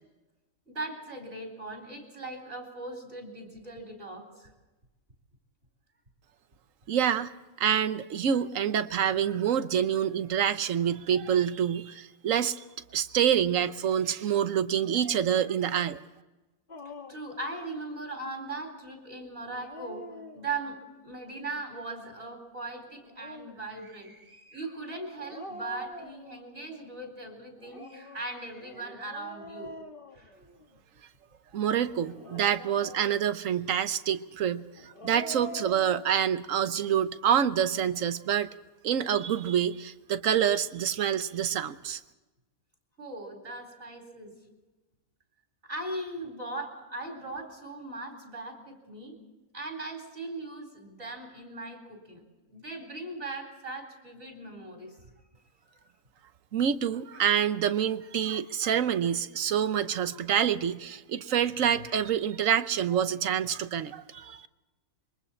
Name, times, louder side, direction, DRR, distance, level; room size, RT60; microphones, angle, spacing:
voice 1, 0.7-4.5 17.1-20.0 20.3-20.8 21.0-29.7 30.1-30.3 43.0-44.3 45.6-49.2 49.5-52.2 52.5-55.1 61.9-62.0, right 2 dB, 45° right, 1 dB, 4.3 m, -39 dB
voice 2, 6.9-12.6 12.9-16.0 31.5-38.5 38.8-42.0 56.5-64.4, right 9 dB, 65° right, 12 dB, 1.2 m, -27 dB
Dog, 16.7-17.3 19.4-20.8 22.9-23.7 25.2-26.7 27.6-30.8 32.0-33.4 34.8-36.1, left 1 dB, 35° left, 1.5 m, -45 dB
26.5 x 23.0 x 4.4 m, 1.1 s
omnidirectional pair, 1.5 m